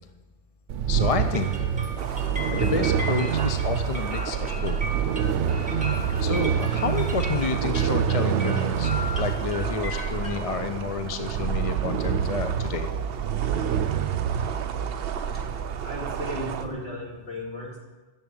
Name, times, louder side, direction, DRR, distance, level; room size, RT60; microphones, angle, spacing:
sound 1, 0.7-16.7, right 8 dB, 90° right, 0.9 m, -27 dB
voice 1, 0.9-1.5 2.5-4.8 6.2-12.9, left 5 dB, 40° left, 8 dB, 0.6 m, -30 dB
sound 2, 1.0-10.4, left 1 dB, 5° right, 1.7 m, -37 dB
sound 3, 2.0-16.7, right 7 dB, 60° right, 0.9 m, -37 dB
voice 2, 15.8-17.8, left 1 dB, 60° left, -6 dB, 4.6 m, -35 dB
10.5 x 7.3 x 8.9 m, 1.2 s
omnidirectional pair, 1.2 m